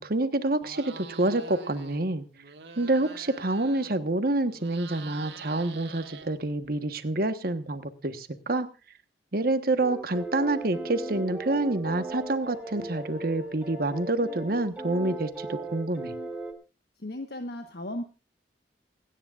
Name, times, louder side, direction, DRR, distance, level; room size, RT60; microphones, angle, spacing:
voice 1, 0.0-2.3 2.8-8.7 9.3-16.1, right 2 dB, 55° right, 10 dB, 1.3 m, -27 dB
sound 1, 0.6-2.0 2.3-4.1 4.4-6.7, right 4 dB, 70° right, 2.0 m, -45 dB
sound 2, 9.8-16.5, right 2 dB, 10° right, 2.3 m, -37 dB
voice 2, 17.0-18.0, left 1 dB, 60° left, 6 dB, 1.3 m, -35 dB
28.0 x 10.0 x 2.5 m, 0.32 s
head